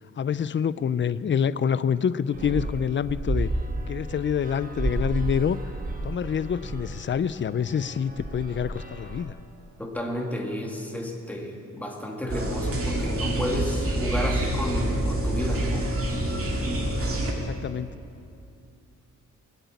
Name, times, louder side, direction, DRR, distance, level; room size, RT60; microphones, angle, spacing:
voice 1, 0.2-3.5 3.9-5.6 6.0-9.3 17.3-17.9, left 7 dB, 40° left, 16 dB, 0.4 m, -26 dB
sound 1, 2.3-9.2, right 1 dB, 25° right, 1.5 m, -32 dB
voice 2, 9.8-15.9, left 1 dB, 5° left, 0 dB, 1.9 m, -31 dB
sound 2, 12.3-17.3, right 1 dB, 45° right, 2.2 m, -27 dB
20.5 x 8.1 x 8.3 m, 2.6 s
wide cardioid pair, 135°, 31 cm